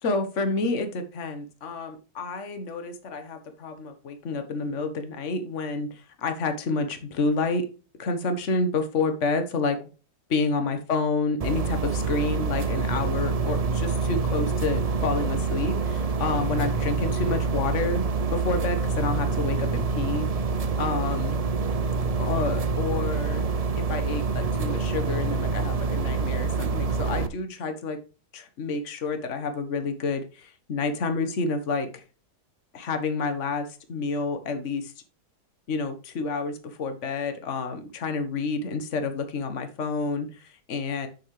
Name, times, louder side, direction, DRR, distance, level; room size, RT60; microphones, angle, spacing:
voice 1, 0.0-7.7 8.0-9.8 10.3-18.0 18.3-20.4 20.8-21.4 22.2-23.5 23.7-28.0 28.3-32.0 32.7-34.9 35.7-41.1, left 3 dB, 50° left, 7 dB, 1.6 m, -29 dB
sound 1, 11.4-27.3, right 4 dB, 60° right, 0.3 m, -26 dB
9.2 x 6.6 x 3.2 m, 0.33 s
omnidirectional pair, 1.7 m